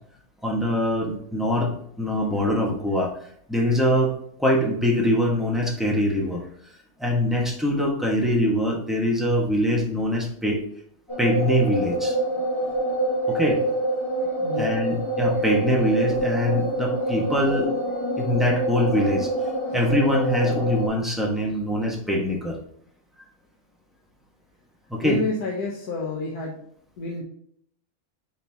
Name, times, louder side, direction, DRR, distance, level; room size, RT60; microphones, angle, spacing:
voice 1, 0.4-1.7 2.0-3.1 3.5-4.1 4.4-6.4 7.0-10.6 11.2-12.1 13.3-13.6 14.6-17.7 18.2-19.3 19.7-22.6 24.9-25.2, equal, ahead, -1 dB, 1.2 m, -23 dB
sound 1, 11.1-20.9, right 1 dB, 20° left, 1.7 m, -26 dB
voice 2, 14.4-14.8 25.0-26.6 27.0-27.2, left 3 dB, 85° left, -2 dB, 1.6 m, -29 dB
8.2 x 4.2 x 2.8 m, 0.68 s
omnidirectional pair, 1.6 m